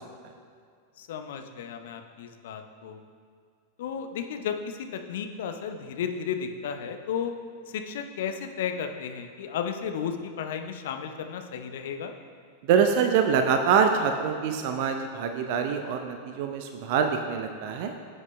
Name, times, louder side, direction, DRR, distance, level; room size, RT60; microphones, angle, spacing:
voice 1, 1.0-3.0 3.8-7.3 7.7-12.1, left 7 dB, 55° left, 6 dB, 0.7 m, -33 dB
voice 2, 12.7-17.9, right 6 dB, 50° right, 6 dB, 0.6 m, -25 dB
16.5 x 8.0 x 2.2 m, 2.2 s
figure-of-eight pair, 90°, 0 cm